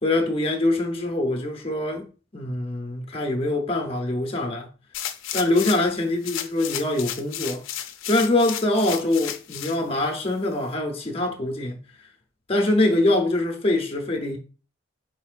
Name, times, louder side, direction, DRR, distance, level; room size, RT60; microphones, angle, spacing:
voice 1, 0.0-2.1 2.3-4.7 5.3-7.6 8.0-11.8 12.5-14.4, left 2 dB, 30° left, 0.8 m, -24 dB
sound 1, 4.9-5.9 6.2-9.8 10.3-10.4, left 10 dB, 70° left, 0.5 m, -33 dB
4.4 x 4.2 x 2.4 m
head